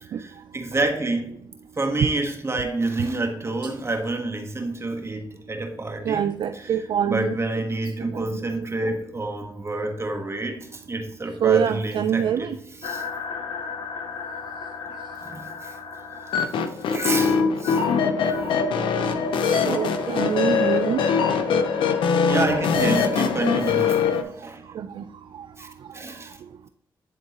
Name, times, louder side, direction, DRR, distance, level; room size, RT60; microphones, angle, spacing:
voice 1, 0.0-1.4 1.8-6.3 6.6-6.8 7.1-12.5 12.8-13.0 14.9-15.8 16.9-17.8 18.2-18.4 22.3-24.0 24.4-24.6 25.6-26.4, right 2 dB, 35° right, 4 dB, 1.3 m, -28 dB
voice 2, 6.1-7.4 8.0-9.0 11.4-12.6 19.4-21.0 24.7-25.0, right 9 dB, 75° right, 8 dB, 0.4 m, -25 dB
sound 1, 12.8-24.2, left 5 dB, 90° left, 0.6 m, -24 dB
10.5 x 3.6 x 2.9 m, 0.73 s
cardioid pair, 65°, 8 cm